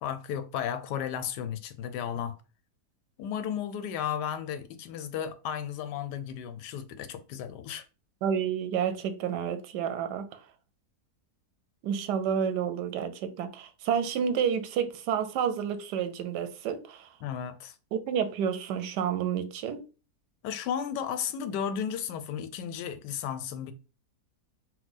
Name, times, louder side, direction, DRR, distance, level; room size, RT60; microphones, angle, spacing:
voice 1, 0.0-2.4 3.2-7.9 17.2-17.8 20.4-23.7, left 8 dB, 90° left, 1.2 m, -34 dB
voice 2, 8.2-10.3 11.8-17.1 17.9-19.9, right 8 dB, 90° right, 1.2 m, -30 dB
4.4 x 2.2 x 3.9 m
omnidirectional pair, 1.8 m